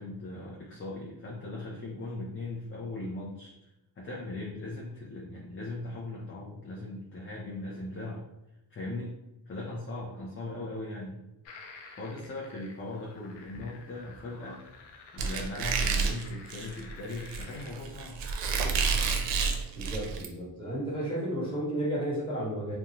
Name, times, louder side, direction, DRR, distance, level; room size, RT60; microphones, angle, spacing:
voice 1, 0.0-3.5 4.0-8.2 8.7-9.2 9.5-11.2 12.0-14.6 15.1-18.2, left 2 dB, 30° left, -4 dB, 0.6 m, -39 dB
sound 1, 11.4-17.7, left 4 dB, 80° left, 0.6 m, -50 dB
Squeak, 15.2-20.3, right 5 dB, 80° right, 0.5 m, -29 dB
voice 2, 19.7-22.8, right 1 dB, 10° left, -6 dB, 1.4 m, -32 dB
2.6 x 2.3 x 2.9 m, 0.91 s
cardioid pair, 90°, 41 cm